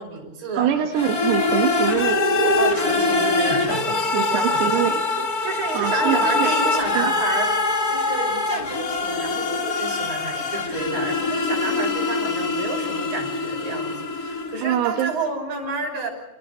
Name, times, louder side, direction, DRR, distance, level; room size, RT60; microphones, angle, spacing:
voice 1, 0.0-0.7 2.6-4.8 5.4-7.5 7.9-16.1, right 4 dB, 55° right, 2 dB, 7.6 m, -30 dB
voice 2, 0.6-2.5 4.1-5.3 5.7-6.6 7.0-7.1 14.6-15.1, right 10 dB, 80° right, 2 dB, 3.7 m, -24 dB
sound 1, 0.9-14.8, left 3 dB, 55° left, 1.0 m, -23 dB
29.5 x 27.5 x 4.4 m, 0.99 s
omnidirectional pair, 4.7 m